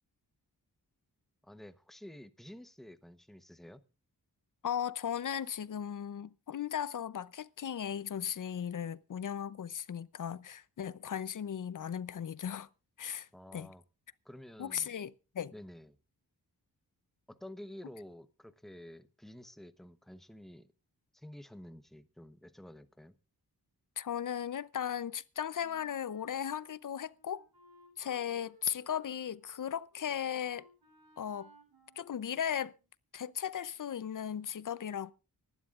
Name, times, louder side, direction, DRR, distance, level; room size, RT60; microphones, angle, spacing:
voice 1, 1.4-3.8 13.3-13.8 14.2-14.9 15.5-16.0 17.3-20.7 21.1-23.2, left 1 dB, ahead, 0.9 m, -50 dB
voice 2, 4.6-12.7 13.0-13.7 14.6-15.5 24.0-27.4 28.0-30.7 31.2-31.5 32.0-32.7 33.1-35.1, left 9 dB, 55° left, 0.7 m, -37 dB
Wind instrument woodwind instrument, 25.6-32.8, right 1 dB, 75° right, 6.9 m, -62 dB
24.5 x 11.5 x 2.5 m
wide cardioid pair, 80°, 37 cm